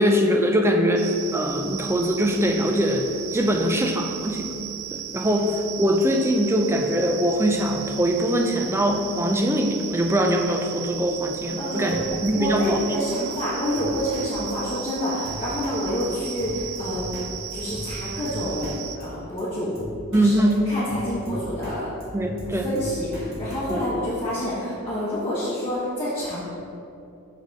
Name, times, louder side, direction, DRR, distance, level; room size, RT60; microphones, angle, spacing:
voice 1, 0.0-4.6 4.9-12.8 20.1-20.7 22.1-22.7 23.7-23.8, equal, 10° right, 3 dB, 0.4 m, -22 dB
sound 1, 1.0-19.0, right 10 dB, 75° right, 0.4 m, -36 dB
voice 2, 11.6-17.0 17.5-19.7 20.1-21.8 22.6-26.4, equal, 25° left, -12 dB, 1.4 m, -28 dB
Drum kit, 11.9-12.3 12.6-12.8 13.0-13.1 13.4-13.5 13.8-14.3 14.5-14.6 14.9-15.0 15.3-15.8 16.0-16.1 16.4-17.3 17.5-18.8 19.0-19.1 19.4-19.5 19.8-20.3 20.5-21.8 22.0-23.7, equal, 45° right, 1.4 m, -37 dB
6.4 x 4.1 x 5.3 m, 2.6 s
head